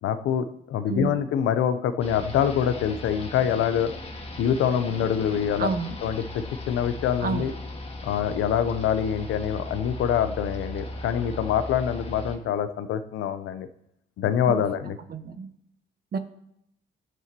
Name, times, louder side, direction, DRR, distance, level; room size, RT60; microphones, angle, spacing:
voice 1, 0.0-3.9 4.4-5.7 6.0-7.5 8.0-13.7 14.2-15.0, left 9 dB, 85° left, 11 dB, 0.7 m, -25 dB
sound 1, 2.0-12.4, left 1 dB, 30° left, 1.8 m, -37 dB
voice 2, 5.6-5.9 7.2-7.5 14.5-14.6 15.1-15.5 16.1-16.2, right 5 dB, 50° right, 8 dB, 1.1 m, -29 dB
18.0 x 7.0 x 3.0 m, 0.76 s
cardioid pair, 90°, 20 cm